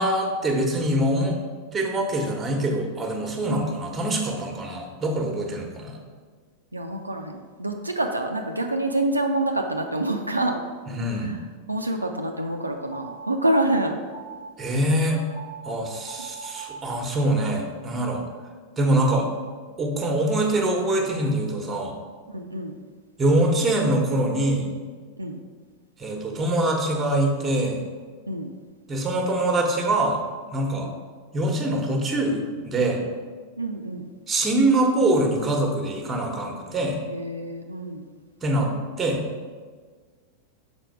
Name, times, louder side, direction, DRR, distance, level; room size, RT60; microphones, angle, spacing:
voice 1, 0.0-1.4 1.7-6.0 10.9-11.3 14.6-15.2 15.6-18.2 18.8-19.3 19.8-21.9 23.2-24.7 26.0-27.8 28.9-30.2 30.5-30.9 31.3-33.0 34.3-37.0 38.4-38.7 39.0-39.2, right 1 dB, 15° right, 2 dB, 1.1 m, -24 dB
voice 2, 6.7-10.6 11.2-11.3 11.7-13.9 22.3-22.7 25.2-25.4 28.3-28.5 30.7-30.9 33.6-34.0 37.1-38.0, right 1 dB, 85° right, 3 dB, 0.4 m, -27 dB
sound 1, 12.2-17.4, right 5 dB, 65° left, 1.7 m, -43 dB
5.8 x 4.4 x 4.6 m, 1.5 s
figure-of-eight pair, 90°, 0 cm